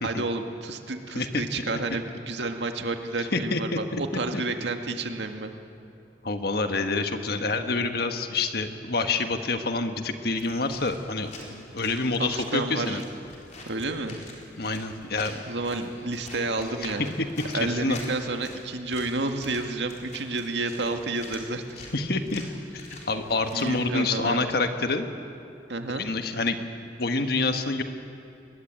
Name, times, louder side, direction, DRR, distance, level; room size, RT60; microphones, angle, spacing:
voice 1, 0.0-5.5 12.2-13.0 13.7-14.2 15.5-17.1 17.5-21.6 23.5-24.4 25.7-26.1, right 2 dB, 75° right, 5 dB, 1.9 m, -30 dB
voice 2, 3.3-4.0 6.2-13.0 14.6-15.3 17.2-17.3 17.6-18.0 21.9-22.4 22.7-25.1 26.0-26.6 27.0-27.8, left 3 dB, 60° left, 7 dB, 1.5 m, -27 dB
sound 1, 10.3-23.8, left 2 dB, 40° left, 4.6 m, -46 dB
24.0 x 21.0 x 9.1 m, 2.7 s
head